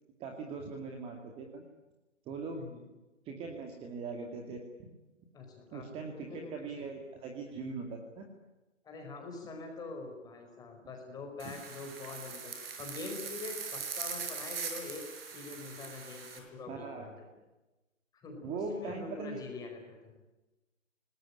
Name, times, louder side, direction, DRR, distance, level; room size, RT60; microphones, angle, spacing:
voice 1, 0.2-1.7 2.3-2.7 3.2-4.9 5.7-8.2 16.7-17.1 18.4-19.4, right 4 dB, 15° right, 3 dB, 2.4 m, -40 dB
voice 2, 2.5-2.9 5.3-5.9 6.3-6.7 8.8-15.0 15.3-17.3 18.1-20.1, left 3 dB, 10° left, 3 dB, 5.0 m, -44 dB
sound 1, 11.4-16.4, right 6 dB, 50° right, 6.7 m, -41 dB
26.0 x 20.0 x 9.9 m, 1.1 s
figure-of-eight pair, 145°, 38 cm